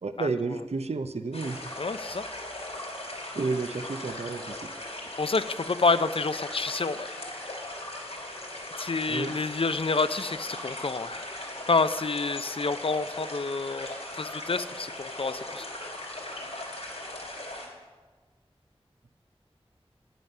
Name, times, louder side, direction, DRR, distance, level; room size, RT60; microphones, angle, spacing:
voice 1, 0.0-1.6 3.3-4.7 9.1-9.4, right 3 dB, 85° right, 10 dB, 0.6 m, -31 dB
sound 1, 1.3-17.7, left 1 dB, 85° left, 2.7 m, -39 dB
voice 2, 1.8-2.2 5.2-7.1 8.8-11.3 11.7-15.7, left 4 dB, 60° left, 12 dB, 0.4 m, -28 dB
9.5 x 9.3 x 5.4 m, 1.4 s
wide cardioid pair, 40°, 11 cm